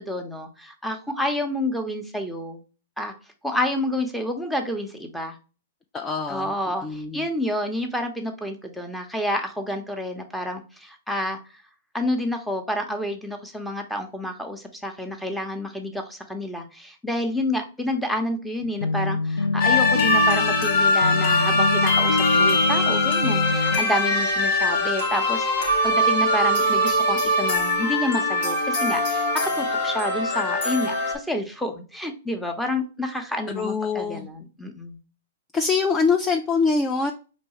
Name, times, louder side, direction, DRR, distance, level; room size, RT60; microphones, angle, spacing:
voice 1, 0.0-2.6 3.0-3.1 3.4-5.4 6.3-11.4 11.9-35.0, left 1 dB, ahead, 4 dB, 0.8 m, -29 dB
voice 2, 5.9-6.5 6.8-7.3 33.6-34.3 35.5-37.1, left 4 dB, 20° left, 5 dB, 0.4 m, -24 dB
Guitar Amateuristic Moody, 18.6-23.8, left 3 dB, 85° left, 0.4 m, -25 dB
sound 1, 19.6-31.2, left 1 dB, 60° left, 1.2 m, -22 dB
4.4 x 3.2 x 2.9 m, 0.35 s
hypercardioid pair, 115°, 0 cm